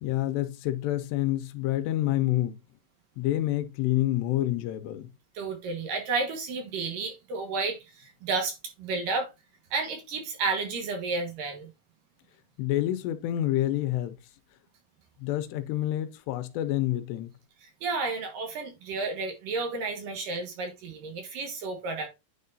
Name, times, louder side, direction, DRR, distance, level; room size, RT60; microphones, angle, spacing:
voice 1, 0.0-2.6 3.2-5.1 12.6-14.2 15.2-17.3, left 14 dB, 85° left, 2.8 m, -28 dB
voice 2, 5.3-9.3 9.7-11.7 17.6-22.1, right 4 dB, 65° right, 2.7 m, -32 dB
9.5 x 4.7 x 2.6 m
omnidirectional pair, 4.9 m